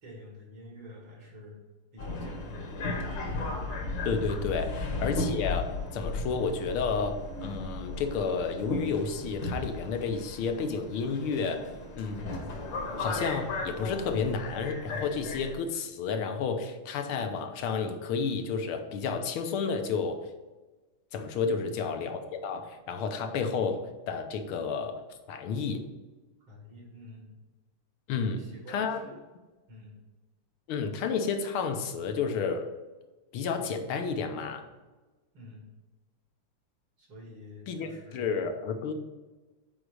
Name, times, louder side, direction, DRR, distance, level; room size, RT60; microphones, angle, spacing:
voice 1, 0.0-1.6 1.9-2.9 21.5-21.7 26.5-27.3 28.1-29.1 29.7-30.0 35.3-35.6 37.0-38.4, left 1 dB, 70° right, -3 dB, 3.5 m, -48 dB
Subway metro underground, 2.0-15.5, left 2 dB, 60° left, 1.8 m, -35 dB
voice 2, 4.0-11.7 11.9-12.3 13.0-20.3 21.1-25.0 25.3-25.8 28.1-28.4 28.7-29.0 30.7-32.7 33.3-34.6 37.7-38.9, left 5 dB, 75° left, 6 dB, 1.7 m, -31 dB
8.2 x 4.9 x 4.9 m, 1.2 s
omnidirectional pair, 2.4 m